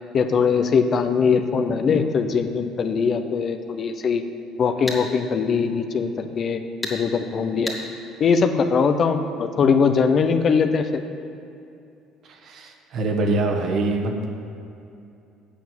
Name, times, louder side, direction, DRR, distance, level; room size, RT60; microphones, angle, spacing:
voice 1, 0.1-4.2 4.6-6.6 6.9-7.7 8.2-11.0, left 5 dB, 45° left, 7 dB, 0.7 m, -21 dB
sound 1, 4.9-5.0 6.8-7.0 7.7-7.8, left 1 dB, 10° left, 2.0 m, -29 dB
voice 2, 12.2-14.2, right 2 dB, 60° right, 3 dB, 1.2 m, -24 dB
8.2 x 5.7 x 7.4 m, 2.6 s
supercardioid pair, 85°, 0 cm